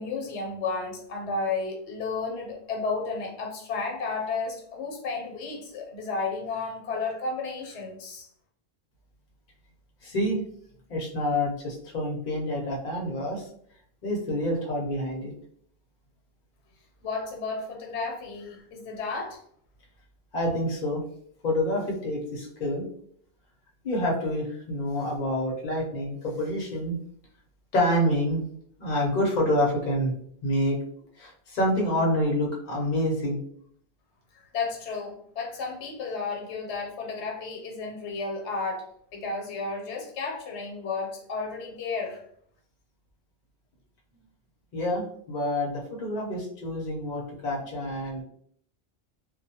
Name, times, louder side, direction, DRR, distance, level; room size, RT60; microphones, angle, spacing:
voice 1, 0.0-8.3 17.0-19.4 34.3-38.8 39.1-42.2, left 4 dB, 85° left, 1 dB, 0.9 m, -32 dB
voice 2, 10.0-10.4 10.9-13.4 14.0-15.3 20.3-21.0 21.4-22.8 23.8-27.0 27.7-28.4 28.8-30.1 30.4-30.8 31.2-33.4 44.7-48.2, left 1 dB, 50° left, -1 dB, 0.7 m, -27 dB
2.2 x 2.1 x 2.7 m, 0.64 s
omnidirectional pair, 1.1 m